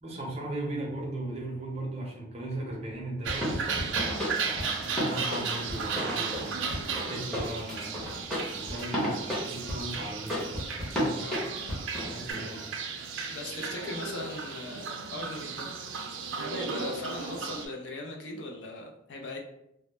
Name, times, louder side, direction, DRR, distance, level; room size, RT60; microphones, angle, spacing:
voice 1, 0.0-3.6 4.4-8.2 8.5-11.4 12.1-12.7, right 1 dB, 35° right, -1 dB, 0.6 m, -38 dB
sound 1, 3.2-12.3, equal, ahead, 0.7 m, -32 dB
sound 2, 3.2-17.7, right 5 dB, 85° right, 0.4 m, -35 dB
voice 2, 11.2-11.5 13.3-15.7 16.4-19.4, left 2 dB, 70° left, 2 dB, 0.4 m, -39 dB
2.2 x 2.0 x 2.9 m, 0.78 s
head